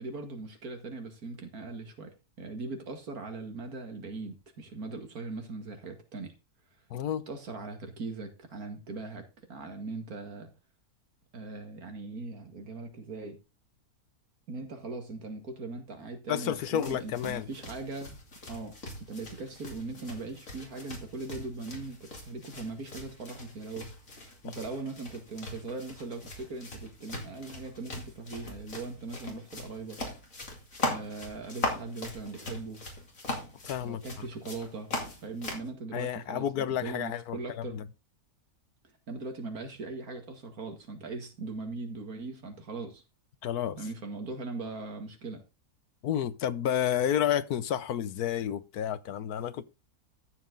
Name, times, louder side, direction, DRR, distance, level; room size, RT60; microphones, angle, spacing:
voice 1, 0.0-6.3 7.3-10.5 11.3-13.4 14.5-18.2 18.5-18.8 19.1-30.0 30.9-32.8 33.8-34.9 35.2-37.8 39.1-43.0 43.8-45.4, right 3 dB, 70° right, 2.5 m, -40 dB
voice 2, 6.9-7.2 16.3-17.5 24.4-24.5 33.6-34.0 35.9-37.8 43.4-43.8 46.0-49.7, left 10 dB, 80° left, 1.3 m, -30 dB
sound 1, 16.5-35.7, left 2 dB, 60° left, 3.2 m, -40 dB
13.0 x 7.5 x 3.9 m
omnidirectional pair, 1.6 m